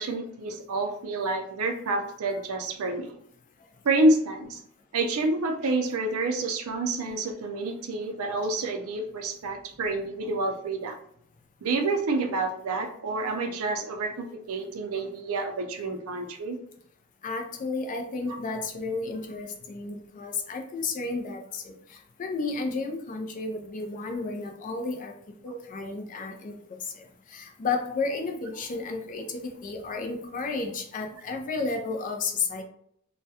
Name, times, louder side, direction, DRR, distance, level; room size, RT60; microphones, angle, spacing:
voice 1, 0.0-3.2 3.8-4.6 4.9-11.0 11.6-16.6 25.5-25.6, right 2 dB, 75° right, 4 dB, 0.4 m, -28 dB
voice 2, 17.2-25.1 25.4-26.5 26.8-32.6, left 3 dB, 35° left, 3 dB, 0.4 m, -32 dB
2.3 x 2.1 x 2.7 m, 0.67 s
head